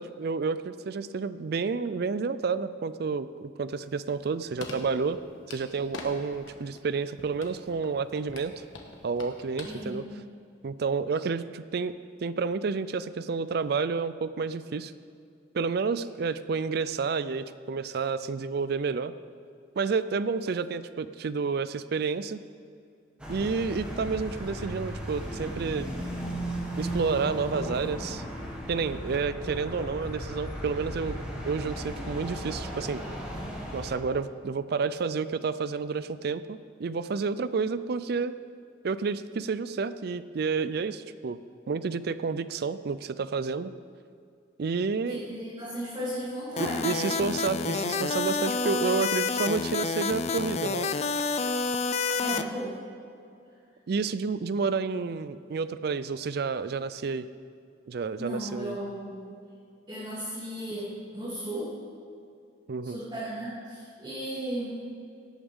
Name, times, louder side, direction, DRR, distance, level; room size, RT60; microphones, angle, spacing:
voice 1, 0.0-5.2 5.5-8.5 9.0-10.1 10.6-11.9 12.2-14.9 15.5-19.1 19.8-22.4 23.3-25.9 26.8-28.2 28.7-31.2 31.4-33.0 33.7-38.3 38.8-41.4 41.7-43.7 44.6-45.2 46.6-50.9 53.9-57.3 57.9-58.8 62.7-63.0, right 5 dB, 55° right, 14 dB, 0.4 m, -30 dB
sound 1, 3.7-6.1 6.3-6.9 7.2-9.7 10.0-10.1, left 3 dB, 85° left, 1.4 m, -44 dB
voice 2, 9.6-10.1 45.0-47.1 47.5-47.8 52.2-52.9 58.2-59.2 59.9-61.8 62.8-64.9, right 1 dB, 25° right, -11 dB, 2.9 m, -35 dB
sound 2, 23.2-33.9, equal, 5° right, 1.8 m, -36 dB
sound 3, 46.6-52.4, left 4 dB, 35° left, 0.3 m, -29 dB
17.5 x 8.6 x 3.6 m, 2.4 s
head